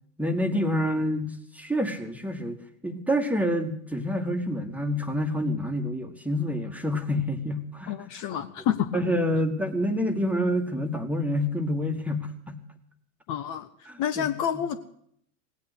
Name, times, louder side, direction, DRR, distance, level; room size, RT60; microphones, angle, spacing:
voice 1, 0.2-2.6 2.8-7.9 8.9-12.6 13.9-14.3, equal, 5° right, 6 dB, 1.7 m, -27 dB
voice 2, 7.9-9.0 13.3-13.7 14.0-14.8, left 9 dB, 40° left, 8 dB, 1.1 m, -28 dB
17.5 x 8.8 x 8.2 m, 0.67 s
hypercardioid pair, 95°, 46 cm